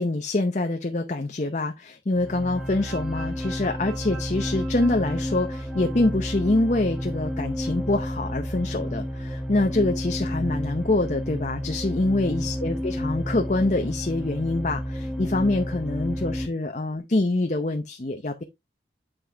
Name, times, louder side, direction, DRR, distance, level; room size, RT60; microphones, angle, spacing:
voice 1, 0.0-18.4, left 2 dB, 40° left, 0.7 m, -25 dB
sound 1, 2.1-16.5, equal, 5° right, 1.2 m, -31 dB
8.1 x 5.8 x 3.4 m
head